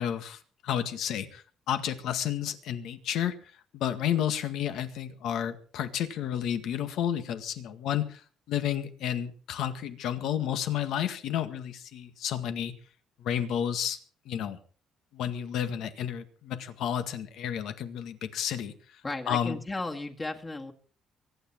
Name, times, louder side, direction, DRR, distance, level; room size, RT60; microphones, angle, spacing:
voice 1, 0.0-3.4 3.7-8.2 8.5-12.7 13.2-14.0 14.3-14.6 15.1-18.7 19.3-19.6, left 10 dB, 75° left, 9 dB, 1.9 m, -31 dB
voice 2, 19.0-20.7, left 2 dB, 20° left, 4 dB, 2.0 m, -35 dB
24.0 x 9.7 x 4.6 m, 0.41 s
cardioid pair, 130°, 0 cm